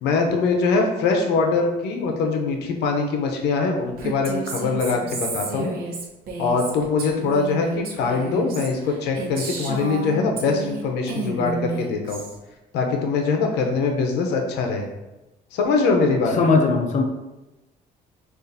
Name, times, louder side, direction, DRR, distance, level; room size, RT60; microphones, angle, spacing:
voice 1, 0.0-5.7 6.4-12.2 12.7-14.9 15.5-16.3, left 4 dB, 85° left, 3 dB, 0.6 m, -22 dB
Female speech woman speaking, 4.0-10.8 11.1-12.4, right 3 dB, 60° right, 0.8 m, -31 dB
voice 2, 16.4-17.0, left 4 dB, 45° left, 3 dB, 0.5 m, -18 dB
6.5 x 2.5 x 2.6 m, 1.0 s
cardioid pair, 110°, 17 cm